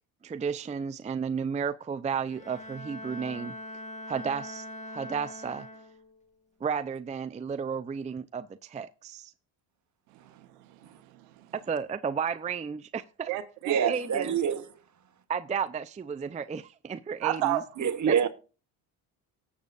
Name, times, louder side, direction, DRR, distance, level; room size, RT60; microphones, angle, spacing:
voice 1, 0.2-3.5 4.1-4.7 4.9-5.7 6.6-9.3 11.5-13.3 13.7-14.3 15.3-17.6 18.1-18.2, right 6 dB, 15° right, 0.5 m, -33 dB
Bowed string instrument, 2.1-6.2, left 1 dB, 15° left, 2.0 m, -42 dB
voice 2, 10.1-11.5 13.3-13.9 17.2-17.6, right 14 dB, 85° right, 1.0 m, -32 dB
voice 3, 13.7-14.6 17.8-18.3, right 7 dB, 40° right, 1.4 m, -26 dB
18.5 x 7.0 x 2.5 m
supercardioid pair, 65°, 47 cm